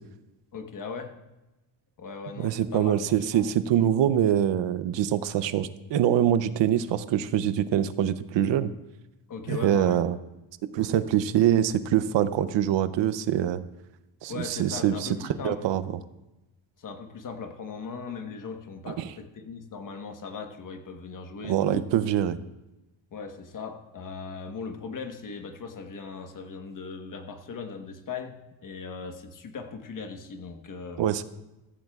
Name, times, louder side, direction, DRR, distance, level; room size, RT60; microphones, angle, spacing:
voice 1, 0.5-1.2 2.0-3.5 9.3-10.0 14.3-15.6 16.8-21.9 23.1-31.2, left 5 dB, 45° left, 6 dB, 1.2 m, -39 dB
voice 2, 2.4-8.7 9.5-10.2 10.6-13.6 14.2-15.1 15.4-15.8 18.9-19.1 21.4-22.4 31.0-31.2, right 10 dB, 75° right, 14 dB, 0.7 m, -24 dB
15.0 x 14.5 x 2.4 m, 1.0 s
cardioid pair, 165°, 45 cm